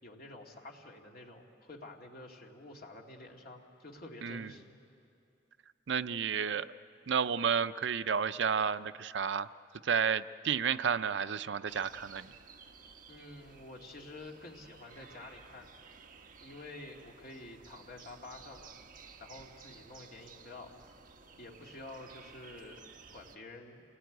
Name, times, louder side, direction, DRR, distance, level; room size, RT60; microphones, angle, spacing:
voice 1, 0.0-4.6 13.1-15.7 16.4-18.7 19.2-20.7 21.4-23.8, left 2 dB, 50° left, 0 dB, 2.4 m, -49 dB
voice 2, 5.9-6.7 7.1-9.5 9.8-12.3, right 7 dB, 65° right, 12 dB, 0.5 m, -31 dB
sound 1, 11.7-23.4, right 5 dB, 45° right, 1.2 m, -55 dB
28.0 x 18.5 x 9.3 m, 2.5 s
head